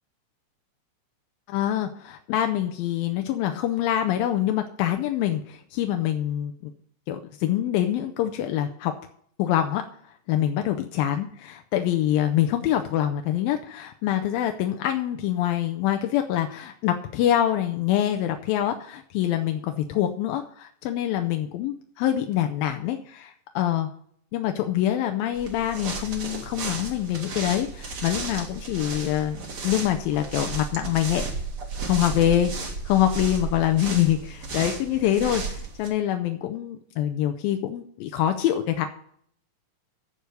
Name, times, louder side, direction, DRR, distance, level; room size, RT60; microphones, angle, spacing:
voice 1, 1.5-6.7 7.1-8.9 9.4-9.8 10.3-23.9 24.3-31.3 31.8-32.5 32.9-38.9, left 11 dB, 85° left, 6 dB, 2.6 m, -25 dB
sound 1, 25.3-35.9, right 4 dB, 45° right, 2.6 m, -34 dB
14.5 x 4.9 x 6.7 m, 0.63 s
omnidirectional pair, 4.1 m